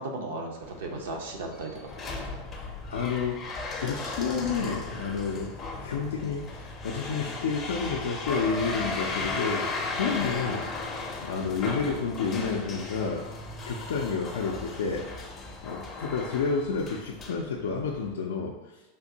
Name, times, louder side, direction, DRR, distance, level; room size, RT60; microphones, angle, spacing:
voice 1, 0.0-2.1 15.6-15.8, right 2 dB, 75° right, 1 dB, 0.6 m, -36 dB
sound 1, 0.6-18.1, left 3 dB, 30° left, 0.5 m, -36 dB
voice 2, 2.9-10.7 11.2-13.2 13.7-15.4 15.6-18.8, left 5 dB, 80° left, -1 dB, 0.3 m, -30 dB
3.6 x 2.5 x 2.7 m, 1.1 s
hypercardioid pair, 110°, 0 cm